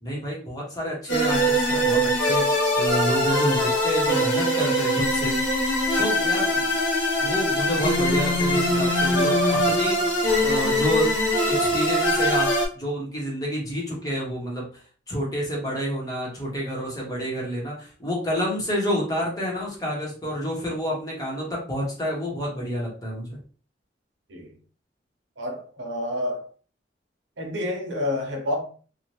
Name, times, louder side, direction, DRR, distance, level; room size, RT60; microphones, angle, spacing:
voice 1, 0.0-5.3 6.0-6.7 7.2-10.0 10.4-11.2 11.5-14.7 15.1-23.4, equal, 20° left, 1.0 m, -28 dB
sound 1, 1.1-12.7, left 1 dB, 90° left, 1.0 m, -22 dB
voice 2, 25.4-26.5 27.4-28.6, left 1 dB, 90° right, 0.8 m, -29 dB
2.7 x 2.4 x 3.1 m
head